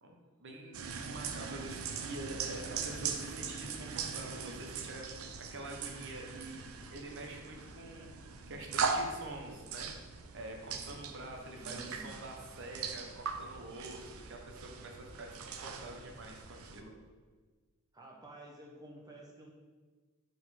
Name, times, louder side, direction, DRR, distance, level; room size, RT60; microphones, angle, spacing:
voice 1, 0.4-5.0 5.5-6.6 6.9-8.1 8.5-9.9 10.3-16.9, right 2 dB, 60° right, 2 dB, 0.9 m, -46 dB
sound 1, 0.7-16.8, right 5 dB, 85° right, 0.5 m, -40 dB
voice 2, 11.6-12.2 17.9-19.5, right 1 dB, 20° right, -1 dB, 0.8 m, -51 dB
5.1 x 3.9 x 5.8 m, 1.4 s
head